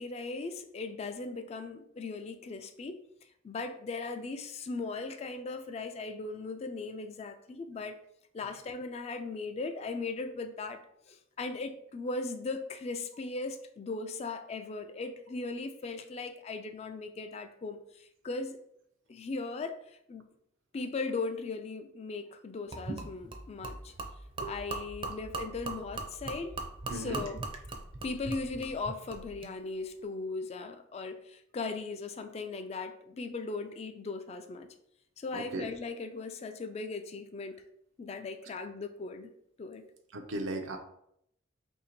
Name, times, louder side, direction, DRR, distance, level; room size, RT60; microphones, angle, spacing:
voice 1, 0.0-3.0 3.4-8.0 8.3-10.8 11.1-18.6 19.1-20.3 20.7-23.9 24.4-26.6 26.9-27.5 28.0-34.7 35.2-37.6 38.0-39.3 39.6-39.9, left 3 dB, 35° left, 7 dB, 0.3 m, -38 dB
Gurgling / Liquid, 22.7-29.5, right 3 dB, 25° right, 0.5 m, -40 dB
voice 2, 26.9-27.2 35.3-35.7 40.1-40.8, right 2 dB, 85° right, 5 dB, 0.6 m, -36 dB
2.9 x 2.7 x 4.2 m, 0.73 s
head